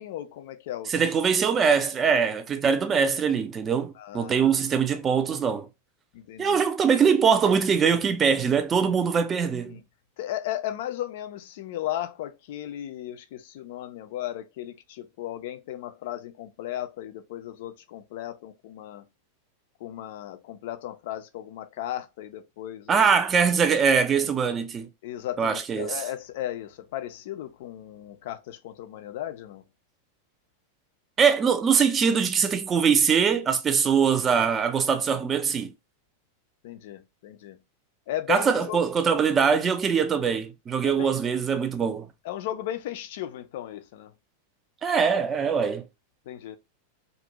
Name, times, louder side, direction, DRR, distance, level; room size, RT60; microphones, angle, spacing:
voice 1, 0.0-1.0 4.0-4.6 6.1-6.6 9.7-9.8 10.2-19.1 19.8-23.1 25.0-29.7 36.6-37.6 38.1-38.8 40.8-41.2 42.2-44.1 46.3-46.6, left 12 dB, 50° left, 0.3 m, -35 dB
voice 2, 0.9-5.7 6.4-9.7 22.9-24.9 25.4-25.9 31.2-35.7 38.3-42.1 44.8-45.8, right 6 dB, 25° right, 0.4 m, -22 dB
2.4 x 2.1 x 2.8 m
figure-of-eight pair, 90°, 0 cm